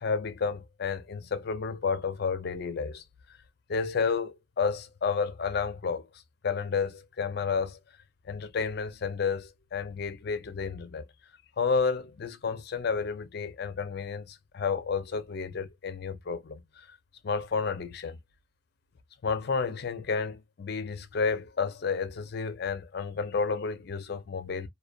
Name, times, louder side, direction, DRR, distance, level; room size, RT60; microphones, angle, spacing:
voice 1, 0.0-3.0 3.7-6.1 6.4-7.8 8.3-11.1 11.6-17.0 17.2-18.2 19.2-24.7, left 5 dB, 50° left, 0.4 m, -31 dB
2.5 x 2.2 x 2.3 m
head